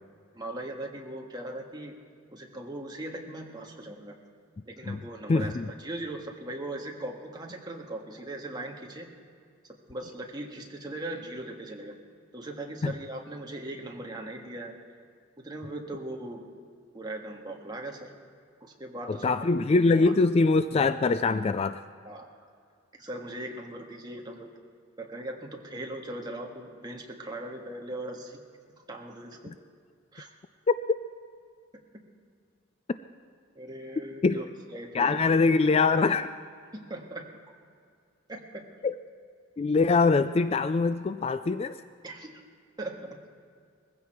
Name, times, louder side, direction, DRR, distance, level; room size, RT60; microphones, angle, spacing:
voice 1, 0.3-2.0 2.3-4.2 4.6-9.1 9.9-11.9 12.3-14.7 15.4-16.4 16.9-18.1 18.6-19.2 20.0-20.1 22.0-22.3 23.0-24.5 25.0-28.4 28.9-29.5 30.1-30.3 33.5-34.4 34.7-35.2 36.7-37.3 38.3-38.7 42.0-42.3 42.8-43.2, right 1 dB, 20° right, 1 dB, 1.6 m, -39 dB
voice 2, 5.3-5.7 12.8-12.9 19.1-21.8 29.5-29.6 30.7-30.8 34.2-34.4 34.9-36.3 38.8-39.0 39.6-41.7, left 4 dB, 30° left, 12 dB, 0.3 m, -23 dB
20.5 x 15.0 x 4.5 m, 2.2 s
head